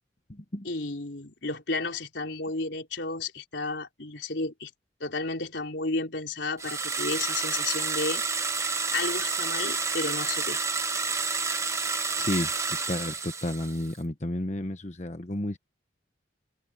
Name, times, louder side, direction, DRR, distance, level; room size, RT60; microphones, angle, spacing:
voice 1, 0.6-4.7 5.0-8.2 8.9-10.6, left 3 dB, 75° left, 3.7 m, -32 dB
sound 1, 6.6-13.9, right 4 dB, 15° right, 1.1 m, -29 dB
voice 2, 12.2-12.5 12.9-15.6, left 1 dB, 40° left, 1.1 m, -31 dB
head